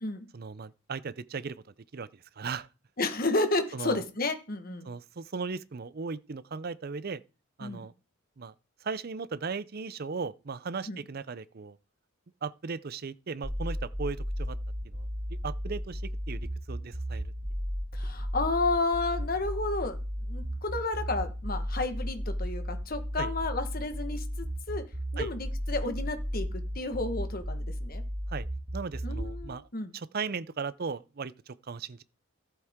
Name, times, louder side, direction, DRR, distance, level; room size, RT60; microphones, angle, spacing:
voice 1, 0.3-1.6 1.9-2.7 3.7-4.0 4.8-7.2 7.6-7.9 8.4-8.5 8.8-11.8 12.4-14.6 14.8-15.1 15.4-16.0 16.3-17.2 23.2-23.3 25.2-25.3 28.3-28.5 28.7-29.7 29.9-32.0, right 5 dB, 45° right, 0.5 m, -37 dB
voice 2, 3.0-4.9 7.6-7.8 10.9-11.0 17.9-20.0 20.3-24.8 25.1-28.0 29.0-29.9, left 2 dB, 45° left, 1.4 m, -31 dB
sound 1, 13.4-29.4, equal, 30° right, 1.9 m, -34 dB
14.0 x 8.0 x 3.6 m
head